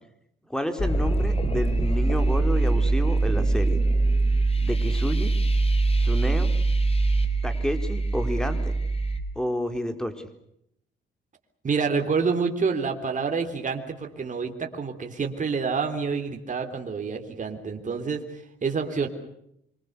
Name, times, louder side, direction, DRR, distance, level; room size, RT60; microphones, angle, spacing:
voice 1, 0.5-3.8 4.6-5.3 6.0-6.5 7.4-8.7 9.4-10.3, equal, 5° left, 7 dB, 4.2 m, -30 dB
sound 1, 0.8-9.2, right 2 dB, 30° left, 3.7 m, -23 dB
voice 2, 11.6-19.1, right 5 dB, 40° right, 4 dB, 3.6 m, -28 dB
26.0 x 26.0 x 6.8 m, 0.76 s
cardioid pair, 90°, 20 cm